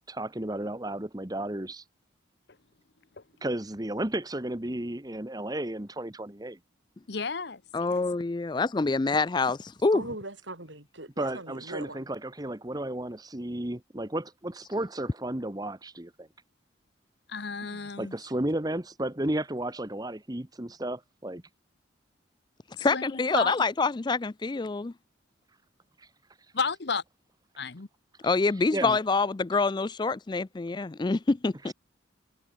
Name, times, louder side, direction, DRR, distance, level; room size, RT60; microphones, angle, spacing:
voice 1, 0.1-1.8 3.4-6.6 11.2-16.3 18.0-21.4 26.0-26.1 28.7-29.0 31.7-31.8, right 1 dB, 20° right, 1.3 m, -33 dB
voice 2, 7.1-8.0 17.3-18.1 22.8-23.5 26.5-27.0 27.6-27.9, left 5 dB, 55° left, 1.0 m, -32 dB
voice 3, 7.7-10.0 22.8-24.9 28.2-31.7, left 3 dB, 25° left, 0.4 m, -26 dB
voice 4, 9.9-12.1 17.6-17.9, right 2 dB, 70° right, 6.9 m, -40 dB
head